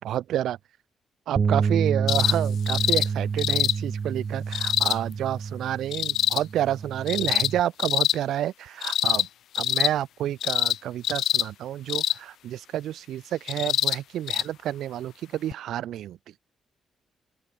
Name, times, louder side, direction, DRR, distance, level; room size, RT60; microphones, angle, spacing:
voice 1, 0.0-0.6 1.3-9.3 9.6-16.4, right 12 dB, 85° right, 4.0 m, -29 dB
Bass guitar, 1.4-7.6, right 6 dB, 35° right, 7.3 m, -28 dB
sound 1, 2.1-2.4 2.7-3.1 3.4-3.8 4.5-5.0 5.9-6.4 7.1-7.5 7.8-8.2 8.8-9.3 9.5-9.9 10.4-10.8 11.0-11.5 11.9-12.2 13.5-14.0 14.3-14.4 15.5-15.6, left 11 dB, 75° left, 0.9 m, -24 dB
open air
cardioid pair, 145°, 0 cm